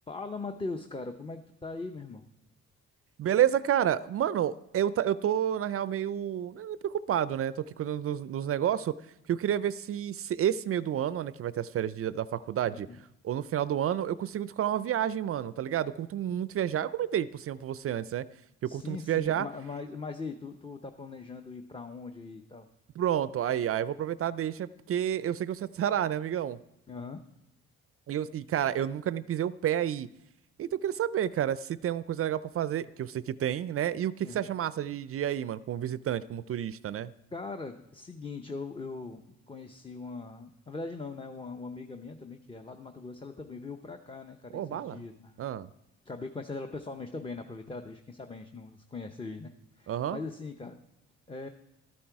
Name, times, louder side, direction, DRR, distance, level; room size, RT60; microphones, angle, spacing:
voice 1, 0.1-2.2 12.6-13.0 18.6-22.7 26.9-27.2 34.2-34.5 37.3-45.4 46.0-49.5 49.8-50.8 51.3-51.5, left 3 dB, 15° left, 5 dB, 0.7 m, -40 dB
voice 2, 3.2-8.9 9.3-12.9 13.2-18.3 18.6-19.5 23.0-26.6 28.1-30.1 30.6-37.1 44.5-45.0 45.4-45.7 49.9-50.2, right 10 dB, 45° right, 17 dB, 0.4 m, -30 dB
13.0 x 8.6 x 4.6 m, 0.87 s
cardioid pair, 95°, 31 cm